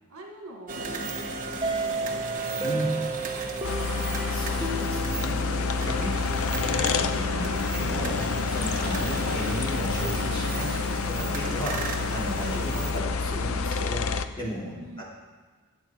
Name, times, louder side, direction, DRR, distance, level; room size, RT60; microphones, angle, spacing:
voice 1, 0.1-2.3 2.7-3.5 14.7-15.0, right 1 dB, 75° right, 0 dB, 1.8 m, -46 dB
sound 1, 0.7-12.9, right 2 dB, 35° right, 1.4 m, -35 dB
sound 2, 1.6-6.3, right 3 dB, 20° right, 1.3 m, -33 dB
sound 3, 3.6-14.2, left 4 dB, 70° left, 0.6 m, -28 dB
voice 2, 4.3-14.1 14.4-15.0, equal, 20° left, -5 dB, 3.2 m, -35 dB
20.0 x 7.8 x 4.6 m, 1.4 s
head